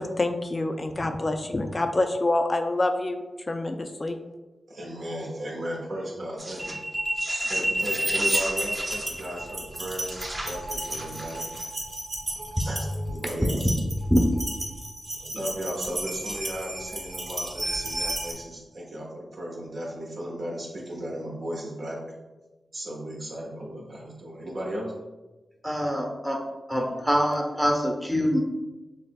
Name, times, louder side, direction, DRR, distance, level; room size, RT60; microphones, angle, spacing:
voice 1, 0.0-4.2, left 2 dB, 30° left, 6 dB, 0.3 m, -27 dB
voice 2, 4.7-6.7 7.5-11.4 12.6-13.7 15.1-22.0 22.7-24.9, right 1 dB, 65° right, -3 dB, 1.3 m, -35 dB
sound 1, 6.4-18.3, right 1 dB, 35° right, 1.1 m, -31 dB
voice 3, 25.6-26.4 26.7-28.4, equal, 10° right, 1 dB, 0.8 m, -24 dB
6.5 x 3.3 x 2.2 m, 1.1 s
wide cardioid pair, 95°, 0 cm